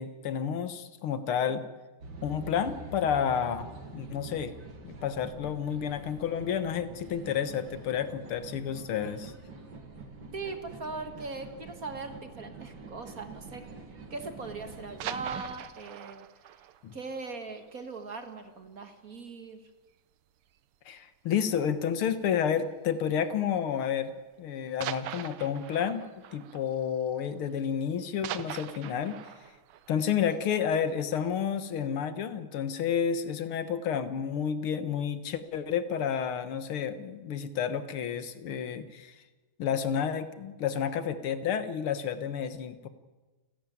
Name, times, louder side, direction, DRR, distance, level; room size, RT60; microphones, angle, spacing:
voice 1, 0.0-1.7 2.2-4.5 4.8-9.3 16.8-16.9 20.9-29.2 29.9-39.2 39.6-42.9, left 8 dB, 75° left, 12 dB, 2.0 m, -30 dB
sound 1, 2.0-15.5, right 4 dB, 60° right, 2.9 m, -46 dB
voice 2, 10.3-13.7 14.1-16.3 16.9-19.6, right 3 dB, 40° right, 7 dB, 2.0 m, -40 dB
sound 2, 14.8-18.3 18.6-18.7 19.2-19.3 19.6-19.7 20.6-21.0 22.2-22.5 23.3-23.4 24.8-27.6 27.9-31.0 31.4-31.5, right 11 dB, 85° right, 1.8 m, -42 dB
29.5 x 12.0 x 9.4 m, 1.2 s
omnidirectional pair, 2.4 m